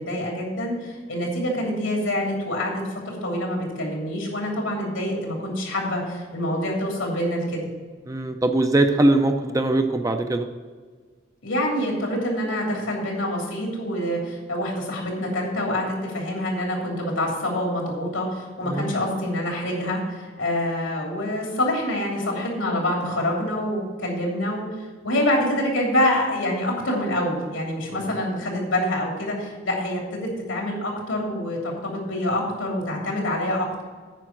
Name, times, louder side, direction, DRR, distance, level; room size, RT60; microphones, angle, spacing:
voice 1, 0.0-7.7 11.4-33.8, left 1 dB, 85° left, -1 dB, 3.1 m, -26 dB
voice 2, 8.1-10.5 18.7-19.0 27.9-28.1, right 2 dB, 15° right, 6 dB, 0.5 m, -21 dB
9.1 x 5.6 x 7.4 m, 1.5 s
head